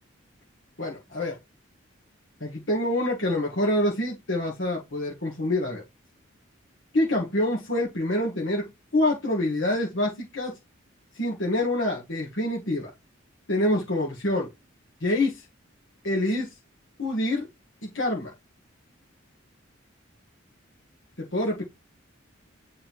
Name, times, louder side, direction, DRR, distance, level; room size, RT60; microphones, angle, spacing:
voice 1, 0.8-1.4 2.4-5.8 6.9-10.5 11.2-12.9 13.5-14.5 15.0-15.4 16.0-16.5 17.0-17.5 17.8-18.3 21.3-21.6, left 1 dB, 70° left, 1.5 m, -26 dB
9.0 x 3.7 x 3.0 m
head